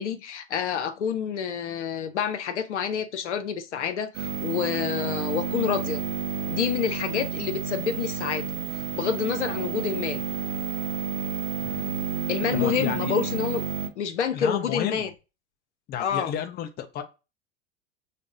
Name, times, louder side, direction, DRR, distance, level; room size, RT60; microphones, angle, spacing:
voice 1, 0.0-6.0 6.5-8.5 8.9-10.2 12.3-13.6 14.0-15.1 16.0-16.3, left 7 dB, 85° left, 0.6 m, -28 dB
sound 1, 4.1-13.9, right 6 dB, 50° right, 0.8 m, -30 dB
voice 2, 11.6-11.9 12.5-13.1 14.3-15.1 15.9-17.0, left 9 dB, 30° left, 0.6 m, -32 dB
5.3 x 2.0 x 2.5 m
hypercardioid pair, 100°, 34 cm